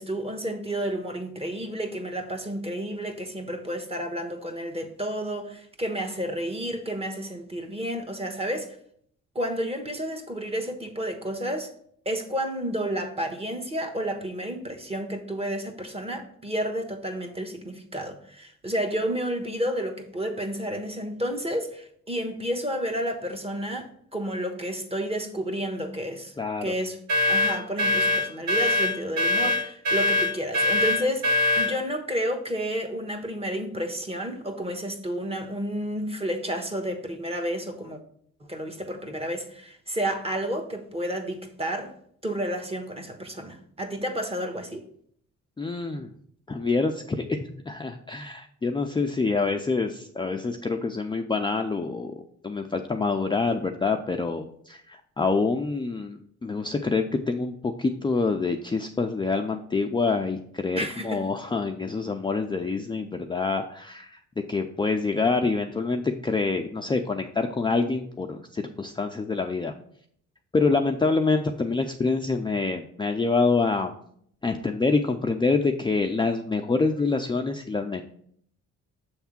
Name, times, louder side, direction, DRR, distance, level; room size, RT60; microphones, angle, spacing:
voice 1, 0.0-8.8 9.3-11.7 12.0-26.3 26.6-27.0 27.3-38.0 38.4-41.9 42.2-44.9 60.7-61.2, equal, 20° right, 1.2 m, -31 dB
voice 2, 26.4-26.7 45.6-46.1 46.5-52.1 52.4-64.2 64.5-69.7 70.5-73.9 74.4-78.0, left 4 dB, 15° left, 0.5 m, -26 dB
sound 1, 27.1-31.8, left 2 dB, 65° right, 1.3 m, -23 dB
7.1 x 3.5 x 5.8 m
cardioid pair, 90°, 30 cm